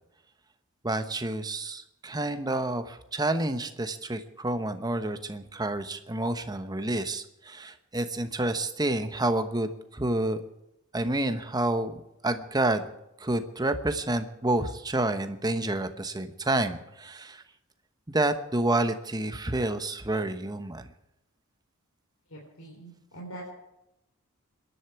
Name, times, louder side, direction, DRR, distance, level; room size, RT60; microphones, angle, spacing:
voice 1, 0.8-10.4 10.9-12.0 12.2-12.9 13.2-17.4 18.1-20.9, right 2 dB, 20° right, 9 dB, 1.1 m, -29 dB
voice 2, 22.3-23.5, right 1 dB, 85° left, -2 dB, 3.9 m, -43 dB
26.0 x 11.0 x 4.8 m, 0.88 s
head